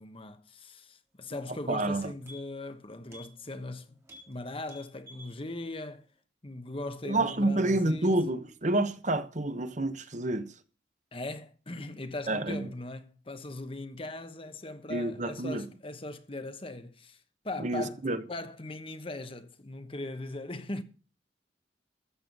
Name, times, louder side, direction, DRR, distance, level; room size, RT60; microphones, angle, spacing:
voice 1, 0.0-4.0 4.3-6.1 6.4-8.1 11.1-18.0 18.3-20.8, left 2 dB, 30° left, 1.1 m, -39 dB
voice 2, 1.7-2.1 7.0-10.5 12.3-12.6 14.9-15.6 17.6-18.2, right 2 dB, 40° right, 1.0 m, -28 dB
sound 1, 2.0-2.7 3.1-3.3 3.6-3.7 4.0-4.3 4.6-5.3 5.7-5.8, left 1 dB, 15° right, 3.6 m, -51 dB
14.0 x 7.7 x 5.4 m
head